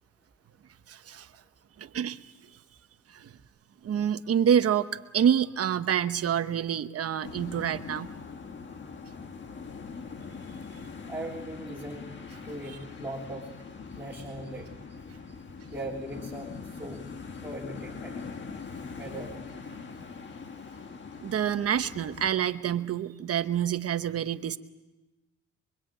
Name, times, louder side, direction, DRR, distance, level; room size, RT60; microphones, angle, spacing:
voice 1, 0.9-1.3 1.8-2.2 3.1-3.3 3.8-4.9 5.1-8.1 19.7-19.8 21.2-24.6, right 9 dB, 50° right, 10 dB, 1.0 m, -27 dB
sound 1, 7.2-22.3, left 5 dB, 40° left, 1.7 m, -42 dB
voice 2, 11.1-12.1 12.4-13.5 13.9-15.0 15.3-15.4 15.7-17.0 17.3-18.3 18.6-18.7 19.0-19.6, right 1 dB, 5° right, -4 dB, 3.4 m, -40 dB
25.5 x 23.5 x 9.0 m, 1.1 s
cardioid pair, 145°, 30 cm